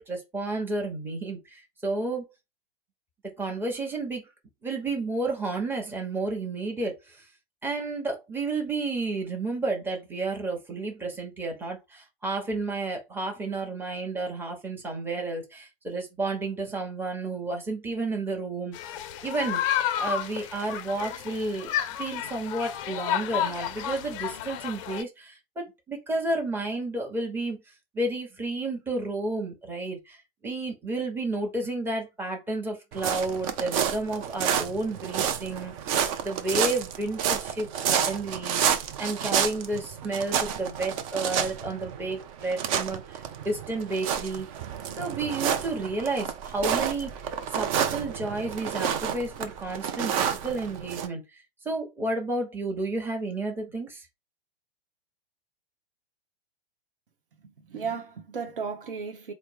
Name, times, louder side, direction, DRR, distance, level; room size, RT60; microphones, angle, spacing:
voice 1, 0.0-2.3 3.4-4.3 4.6-7.3 7.6-21.7 22.0-27.6 27.9-44.5 45.0-47.1 47.5-51.2 51.6-54.1, right 2 dB, 5° right, 1.0 m, -31 dB
sound 1, 18.7-25.0, left 10 dB, 35° left, 0.5 m, -31 dB
sound 2, 32.9-51.1, right 8 dB, 35° right, 0.6 m, -30 dB
voice 2, 57.4-59.3, right 6 dB, 65° right, 0.9 m, -35 dB
4.3 x 2.1 x 4.5 m
figure-of-eight pair, 100°, 29 cm